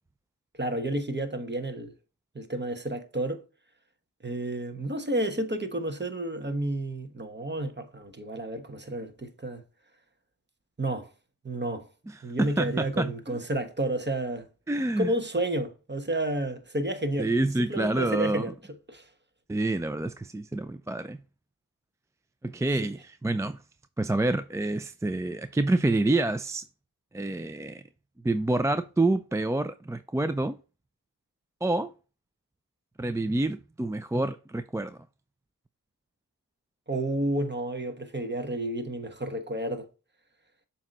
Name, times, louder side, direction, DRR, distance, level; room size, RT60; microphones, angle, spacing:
voice 1, 0.5-1.9 2.3-3.4 4.2-9.6 10.8-11.1 11.4-11.9 12.2-14.5 15.0-17.3 17.7-18.5 18.9-19.0 36.9-39.9, right 1 dB, 25° right, 1.2 m, -31 dB
voice 2, 12.1-13.4 14.7-15.1 17.2-18.5 19.5-21.2 22.4-23.6 24.0-26.7 27.1-27.8 28.2-30.6 31.6-31.9 33.0-35.0, right 2 dB, 10° right, 0.3 m, -27 dB
7.2 x 2.9 x 5.2 m
cardioid pair, 40°, 41 cm